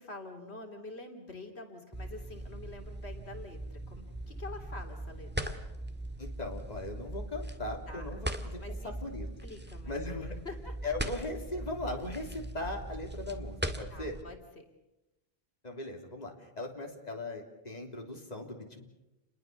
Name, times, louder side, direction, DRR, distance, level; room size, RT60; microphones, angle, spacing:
voice 1, 0.0-5.6 7.9-8.1 8.6-8.9 9.4-10.8 13.9-14.6, left 2 dB, 80° left, 4 dB, 3.4 m, -47 dB
sound 1, 1.9-14.2, right 1 dB, 10° right, 1.9 m, -40 dB
voice 2, 6.2-8.6 8.8-9.3 9.9-10.4 10.8-14.2 15.6-18.9, left 2 dB, 40° left, 2 dB, 3.6 m, -39 dB
29.5 x 22.0 x 6.9 m, 0.96 s
omnidirectional pair, 1.1 m